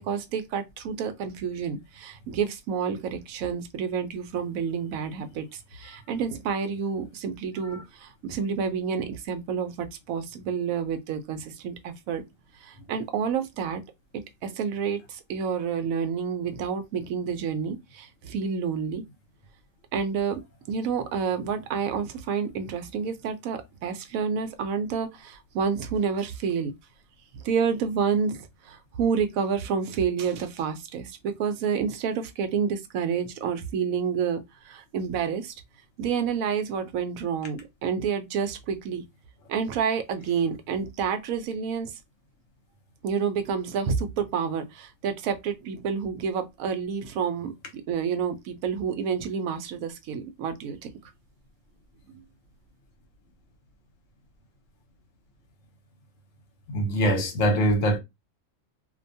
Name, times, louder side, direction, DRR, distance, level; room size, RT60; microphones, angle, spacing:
voice 1, 0.0-12.2 12.6-13.8 14.4-19.0 19.9-20.4 20.7-26.7 27.3-35.5 36.0-39.0 39.5-41.9 43.0-47.5 47.9-50.8, right 6 dB, 85° right, 1.0 m, -29 dB
voice 2, 56.7-58.0, right 1 dB, 70° left, 1.2 m, -23 dB
2.6 x 2.2 x 2.6 m
omnidirectional pair, 1.4 m